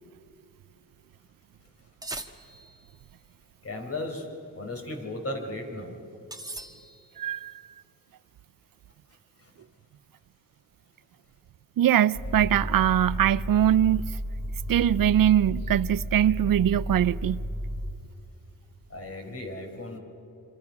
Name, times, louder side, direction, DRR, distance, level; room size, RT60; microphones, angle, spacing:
sound 1, 2.0-2.9 6.3-7.2, right 2 dB, 10° right, 1.4 m, -40 dB
voice 1, 3.6-4.3 4.5-6.0 18.9-20.0, left 2 dB, 45° left, 4.5 m, -35 dB
voice 2, 7.2-7.5 11.8-14.1 14.7-17.4, right 11 dB, 75° right, 0.5 m, -22 dB
sound 2, 12.1-17.9, equal, 10° left, 2.5 m, -33 dB
26.5 x 25.5 x 6.0 m
wide cardioid pair, 100°, 35 cm